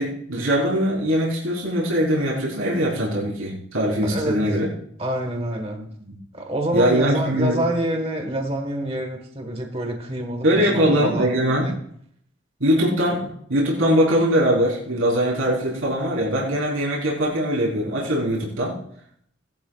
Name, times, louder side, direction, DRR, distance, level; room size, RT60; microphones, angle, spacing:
voice 1, 0.0-4.7 5.7-6.1 6.7-7.6 10.4-11.7 12.6-18.8, equal, 85° right, -4 dB, 4.2 m, -22 dB
voice 2, 4.0-4.5 5.0-5.9 6.3-11.8, right 1 dB, 30° right, 4 dB, 1.5 m, -27 dB
19.0 x 12.0 x 2.5 m, 0.67 s
head